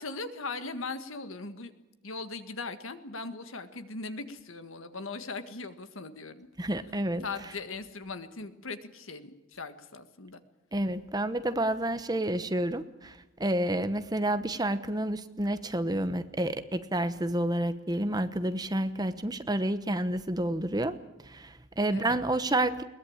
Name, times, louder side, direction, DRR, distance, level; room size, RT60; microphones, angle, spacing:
voice 1, 0.0-1.7 2.0-6.5 7.2-10.4 21.9-22.2, left 3 dB, 80° left, 10 dB, 1.8 m, -39 dB
voice 2, 6.6-7.2 10.7-20.9 21.2-22.8, right 1 dB, 20° right, 11 dB, 1.0 m, -29 dB
22.0 x 19.5 x 8.8 m, 0.99 s
head